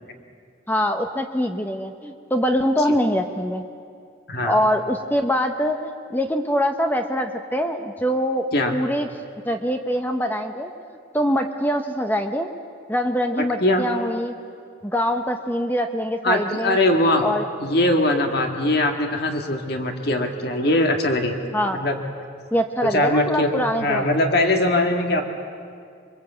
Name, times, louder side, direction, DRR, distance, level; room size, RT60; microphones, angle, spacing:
voice 1, 0.7-3.6 4.4-8.4 8.7-9.1 9.5-10.7 11.1-12.5 12.9-14.3 14.8-16.8 17.2-17.4 21.5-21.8 22.5-24.1, equal, 10° left, 5 dB, 0.8 m, -23 dB
voice 2, 16.2-17.2 17.6-21.4 21.7-22.0 22.9-23.5 23.8-25.2, left 1 dB, 50° left, 3 dB, 1.9 m, -21 dB
26.0 x 23.0 x 8.2 m, 2.3 s
head